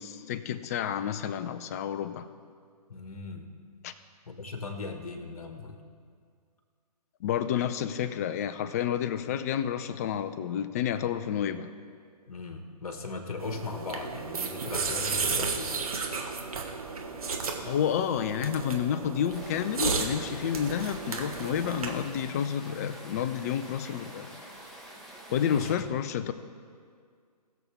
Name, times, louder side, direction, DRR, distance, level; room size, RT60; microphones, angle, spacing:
voice 1, 0.0-2.3 3.8-3.9 7.2-11.7 17.3-24.3 25.3-26.3, left 9 dB, 25° left, 11 dB, 0.4 m, -30 dB
voice 2, 2.9-3.5 4.3-5.8 11.4-11.5 12.3-15.7 25.5-25.9, left 4 dB, 60° left, 5 dB, 1.7 m, -39 dB
sound 1, 13.4-22.1, right 4 dB, 60° right, 1.5 m, -33 dB
sound 2, 19.3-25.7, right 1 dB, ahead, 1.3 m, -47 dB
20.0 x 7.1 x 3.5 m, 2.1 s
figure-of-eight pair, 130°, 21 cm